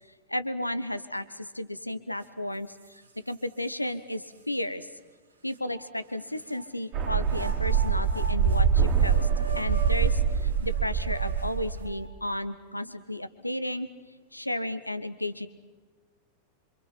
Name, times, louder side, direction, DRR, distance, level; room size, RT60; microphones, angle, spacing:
voice 1, 0.3-4.9 5.4-9.3 9.5-13.9 14.3-15.5, left 1 dB, 85° left, 13 dB, 1.1 m, -33 dB
sound 1, 2.2-2.3 2.8-3.7 4.3-4.4 5.5-6.7 7.2-12.2, right 3 dB, 75° right, 2.2 m, -42 dB
sound 2, 6.9-12.0, right 7 dB, 35° right, 2.6 m, -25 dB
27.5 x 26.5 x 5.9 m, 1.3 s
figure-of-eight pair, 90°, 0 cm